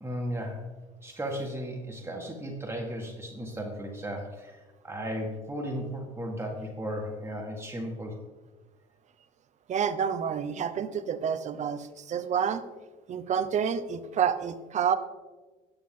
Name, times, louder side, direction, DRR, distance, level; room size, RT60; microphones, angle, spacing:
voice 1, 0.0-0.7 1.0-8.2, equal, 15° right, 0 dB, 1.5 m, -35 dB
voice 2, 9.7-12.6 13.1-15.0, right 7 dB, 45° right, 10 dB, 0.8 m, -28 dB
9.8 x 8.2 x 3.7 m, 1.2 s
supercardioid pair, 75°, 17 cm